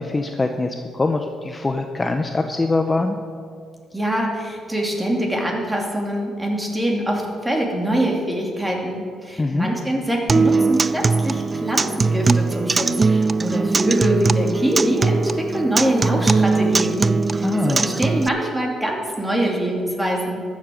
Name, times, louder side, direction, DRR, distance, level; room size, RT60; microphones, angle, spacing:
voice 1, 0.0-3.2 9.4-9.7 17.3-17.9, left 3 dB, 20° left, 5 dB, 0.7 m, -23 dB
voice 2, 3.9-20.4, right 1 dB, 10° right, 0 dB, 2.7 m, -24 dB
Acoustic guitar, 10.3-18.3, right 4 dB, 30° right, 0.3 m, -20 dB
13.5 x 7.4 x 6.5 m, 2.2 s
cardioid pair, 90°, 0 cm